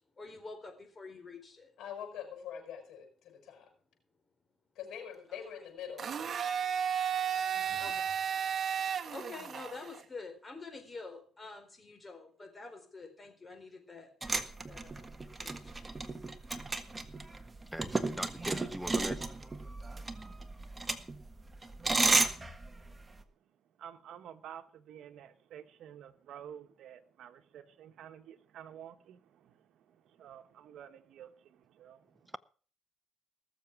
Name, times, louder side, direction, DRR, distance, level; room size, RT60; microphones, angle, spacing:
voice 1, 0.2-1.7 5.3-5.4 7.5-8.2 8.7-15.8, left 3 dB, 30° left, 4.2 m, -48 dB
voice 2, 1.8-3.7 4.8-6.1, left 8 dB, 80° left, 7.0 m, -44 dB
Domestic sounds home sounds, 6.0-10.0, right 8 dB, 50° right, 1.3 m, -33 dB
sound 1, 14.2-23.2, right 3 dB, 20° right, 1.5 m, -33 dB
voice 3, 17.7-19.3, equal, ahead, 0.6 m, -40 dB
voice 4, 23.8-32.3, right 9 dB, 75° right, 1.3 m, -51 dB
19.0 x 7.2 x 6.1 m
cardioid pair, 90°, 0 cm